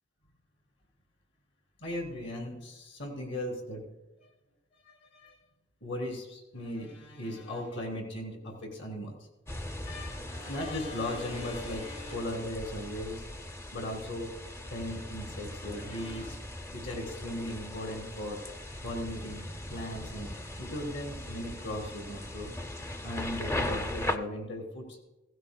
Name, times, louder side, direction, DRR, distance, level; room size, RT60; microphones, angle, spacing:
voice 1, 1.8-3.8 4.2-4.3 4.8-5.4 5.8-9.2 9.8-13.3 13.7-14.3 14.7-16.5 16.7-18.4 18.8-19.4 19.7-20.3 20.6-22.5 23.0-25.0, left 1 dB, 70° left, 2 dB, 3.1 m, -37 dB
sound 1, 9.5-24.2, left 1 dB, 15° left, 0.5 m, -39 dB
16.0 x 15.5 x 2.2 m, 1.0 s
head